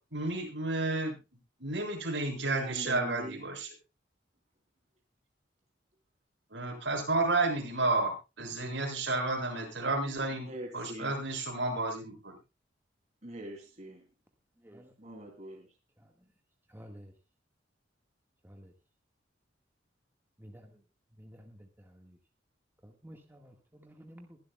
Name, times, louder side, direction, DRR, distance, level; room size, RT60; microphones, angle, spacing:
voice 1, 0.1-1.2 1.6-3.7 6.5-12.3, right 2 dB, 70° right, 1 dB, 6.5 m, -31 dB
voice 2, 2.5-3.5 10.4-11.2 13.2-14.1 15.0-15.7, right 1 dB, 40° right, 0 dB, 3.0 m, -43 dB
voice 3, 16.7-17.1 18.4-18.7 20.4-20.7 21.2-21.6 21.9-22.2 22.8-24.4, equal, 10° right, 2 dB, 1.7 m, -51 dB
22.5 x 12.0 x 2.3 m, 0.27 s
head